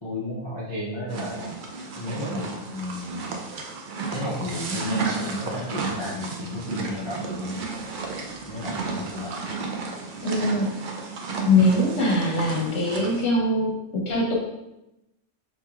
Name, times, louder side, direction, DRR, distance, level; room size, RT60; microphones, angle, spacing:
voice 1, 0.0-1.6 1.9-3.4 4.1-7.7 8.5-9.5, left 1 dB, 45° left, -7 dB, 0.3 m, -32 dB
sound 1, 1.1-13.2, right 4 dB, 75° right, 0.4 m, -33 dB
voice 2, 10.2-10.7 11.4-14.3, left 2 dB, 60° left, -2 dB, 0.9 m, -22 dB
4.7 x 2.8 x 2.4 m, 0.93 s
omnidirectional pair, 1.4 m